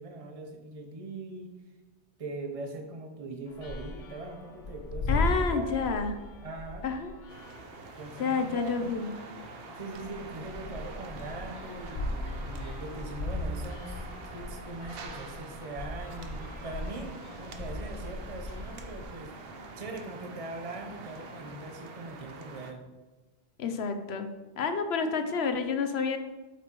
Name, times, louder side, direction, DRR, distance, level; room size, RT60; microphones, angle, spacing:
voice 1, 0.0-1.5 2.2-5.9 6.4-6.9 8.0-8.9 9.8-14.0 14.3-19.3 19.8-22.9, right 2 dB, 35° right, 3 dB, 0.9 m, -41 dB
sound 1, 3.5-19.0, left 2 dB, 50° left, 0.8 m, -38 dB
voice 2, 5.1-6.1 6.8-7.1 8.2-9.1 23.6-24.3 24.6-26.2, left 5 dB, 75° left, 7 dB, 1.0 m, -29 dB
sound 2, 7.3-22.7, right 3 dB, 65° right, 0.9 m, -45 dB
8.3 x 5.9 x 3.0 m, 1.2 s
omnidirectional pair, 1.1 m